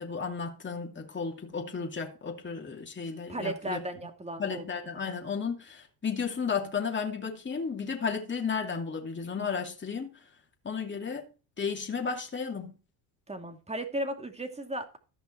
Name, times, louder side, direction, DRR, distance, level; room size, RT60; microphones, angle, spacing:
voice 1, 0.0-3.8 4.4-10.2 10.6-11.3 11.6-12.8, left 5 dB, 25° left, 2.6 m, -33 dB
voice 2, 3.3-4.6 13.3-15.0, right 1 dB, 15° right, 2.4 m, -35 dB
14.0 x 5.7 x 4.5 m
supercardioid pair, 85°, 48 cm